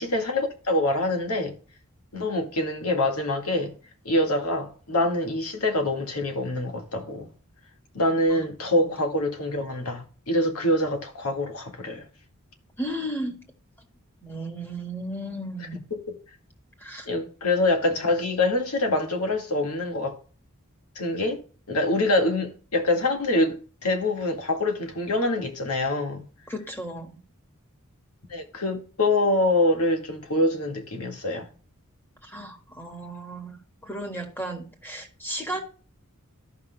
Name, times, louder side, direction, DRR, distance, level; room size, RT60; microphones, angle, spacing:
voice 1, 0.0-1.5 2.1-3.7 4.1-7.3 7.9-12.0 15.6-16.1 17.1-20.2 21.0-21.4 21.7-26.2 28.3-31.5, left 1 dB, 85° left, 1.8 m, -25 dB
voice 2, 12.8-13.4 14.2-15.8 16.8-17.0 26.5-27.1 32.2-33.6 33.8-35.6, right 1 dB, 10° left, 1.6 m, -34 dB
14.0 x 5.8 x 2.2 m
head